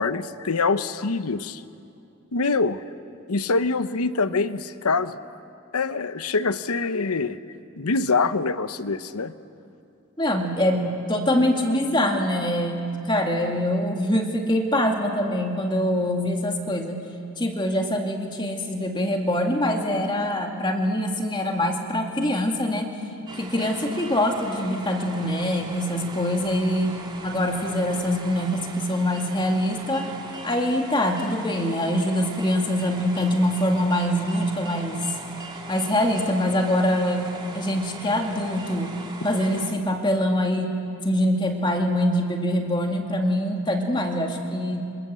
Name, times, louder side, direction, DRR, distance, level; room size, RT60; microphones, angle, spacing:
voice 1, 0.0-1.6 2.3-2.8 3.3-5.2 5.7-7.4 7.8-9.3, left 4 dB, 85° left, 13 dB, 0.9 m, -24 dB
voice 2, 10.2-17.0 17.4-22.9 23.4-30.1 30.4-35.0 35.7-39.0 39.2-40.7 41.0-44.8, left 1 dB, 20° left, 2 dB, 2.3 m, -24 dB
sound 1, 23.3-39.7, right 2 dB, 20° right, 2.6 m, -40 dB
28.0 x 26.5 x 7.7 m, 2.5 s
head